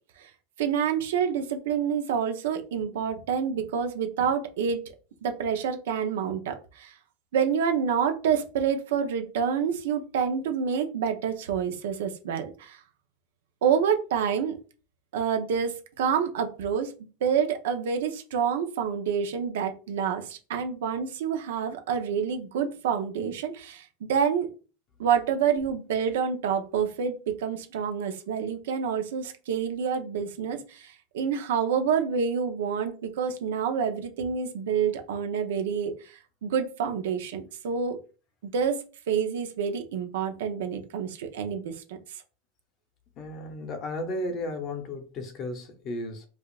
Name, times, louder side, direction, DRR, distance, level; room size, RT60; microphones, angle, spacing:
voice 1, 0.6-4.9 5.2-6.9 7.3-12.8 13.6-14.6 15.1-16.9 17.2-24.5 25.0-38.0 38.4-42.0, right 7 dB, 85° right, 0.7 m, -28 dB
voice 2, 43.2-46.3, left 1 dB, 30° left, 0.6 m, -34 dB
4.9 x 2.4 x 2.4 m
supercardioid pair, 175°, 0 cm